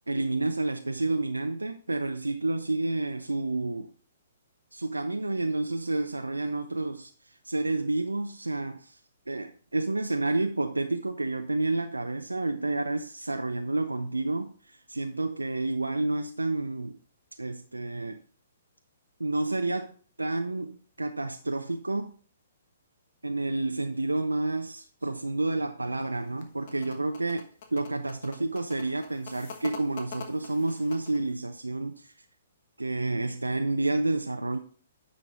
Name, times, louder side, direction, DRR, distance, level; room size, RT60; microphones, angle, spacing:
voice 1, 0.1-3.9 4.7-9.0 9.3-17.0 17.4-18.2 19.2-22.1 23.2-27.4 27.7-32.1 32.8-34.6, right 2 dB, 80° right, 0.5 m, -30 dB
sound 1, 26.2-31.3, left 6 dB, 45° left, 1.2 m, -45 dB
9.5 x 5.2 x 3.0 m
figure-of-eight pair, 120°, 0 cm